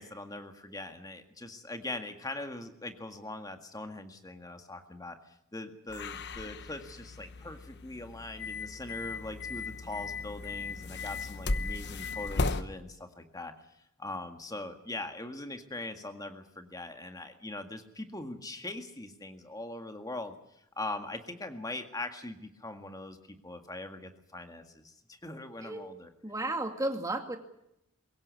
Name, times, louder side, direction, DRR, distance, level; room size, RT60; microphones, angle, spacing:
voice 1, 0.0-13.5 14.0-20.3 20.8-26.1, left 2 dB, 15° left, 6 dB, 1.9 m, -41 dB
sound 1, 5.9-12.6, left 3 dB, 50° left, 1.0 m, -36 dB
voice 2, 26.2-27.4, right 2 dB, 15° right, 5 dB, 2.3 m, -33 dB
22.5 x 17.0 x 9.6 m, 0.80 s
head